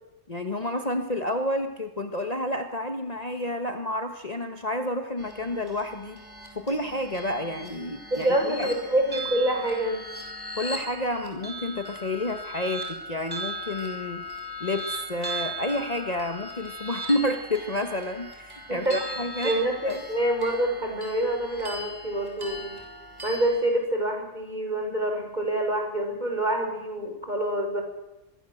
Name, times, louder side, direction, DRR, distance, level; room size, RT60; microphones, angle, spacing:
voice 1, 0.3-6.2 6.5-8.7 10.6-14.2 14.6-19.6 19.8-20.0, left 1 dB, 30° left, 6 dB, 1.6 m, -30 dB
sound 1, 5.2-23.6, equal, 15° right, 6.2 m, -38 dB
voice 2, 8.1-10.0 18.7-19.0 19.4-22.7 23.2-27.8, right 1 dB, 35° right, 3 dB, 6.5 m, -26 dB
25.0 x 23.5 x 7.9 m, 0.99 s
omnidirectional pair, 1.3 m